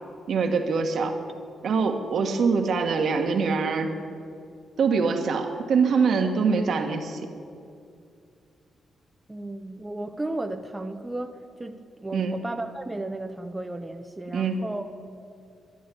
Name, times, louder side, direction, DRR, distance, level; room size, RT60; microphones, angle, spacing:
voice 1, 0.3-1.2 1.6-4.0 4.8-7.3 12.1-12.4 14.3-14.6, right 5 dB, 65° right, 5 dB, 1.5 m, -24 dB
voice 2, 9.3-14.9, right 2 dB, 20° right, 6 dB, 0.8 m, -34 dB
11.5 x 11.0 x 8.5 m, 2.4 s
cardioid pair, 65°, 0 cm